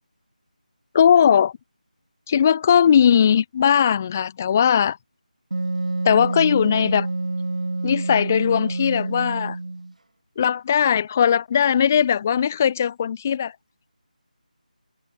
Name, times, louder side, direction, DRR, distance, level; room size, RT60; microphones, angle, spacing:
voice 1, 0.9-1.5 2.3-5.0 6.0-7.1 7.8-9.6 10.4-13.5, left 8 dB, 20° left, 0.5 m, -19 dB
Wind instrument woodwind instrument, 5.5-9.9, right 2 dB, 55° right, 1.9 m, -27 dB
figure-of-eight pair, 160°, 4 cm